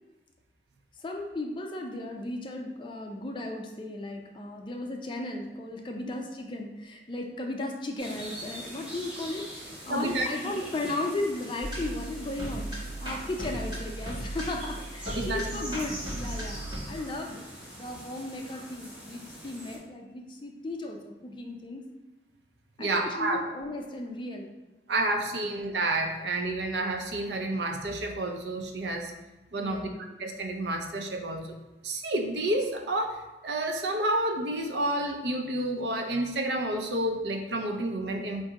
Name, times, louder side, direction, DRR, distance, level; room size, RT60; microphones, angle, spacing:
voice 1, 1.0-17.4 17.8-21.8 22.8-24.6 25.4-25.6 29.5-29.9, left 2 dB, 25° left, 2 dB, 0.4 m, -36 dB
sound 1, 8.0-19.8, equal, 5° right, 1.0 m, -44 dB
voice 2, 9.9-10.3 15.1-15.5 22.8-23.4 24.9-29.1 29.5-29.9 30.2-31.6 31.8-38.4, right 1 dB, 75° right, 3 dB, 0.6 m, -30 dB
sound 2, 11.6-16.8, right 1 dB, 25° right, 1.3 m, -36 dB
3.6 x 2.6 x 4.6 m, 1.1 s
head